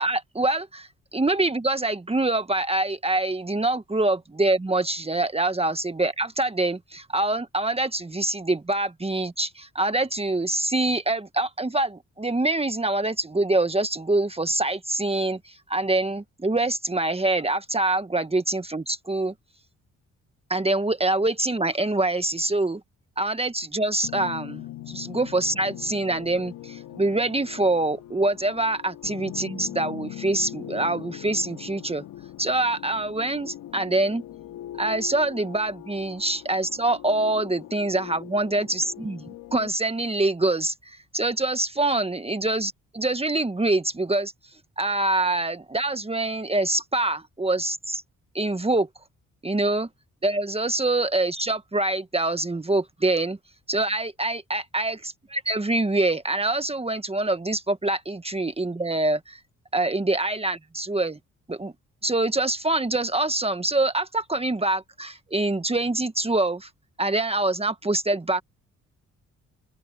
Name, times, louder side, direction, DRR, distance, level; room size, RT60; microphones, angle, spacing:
voice 1, 0.0-19.3 20.5-22.8 23.2-32.0 32.4-34.2 34.8-44.3 44.8-48.0 48.3-48.9 49.4-49.9 50.2-53.4 53.7-59.4 59.7-61.2 61.5-61.7 62.0-66.7 67.0-68.4, right 2 dB, 20° right, 1.5 m, -25 dB
sound 1, 24.0-39.7, left 13 dB, 80° left, 2.8 m, -41 dB
open air
supercardioid pair, 55°, 31 cm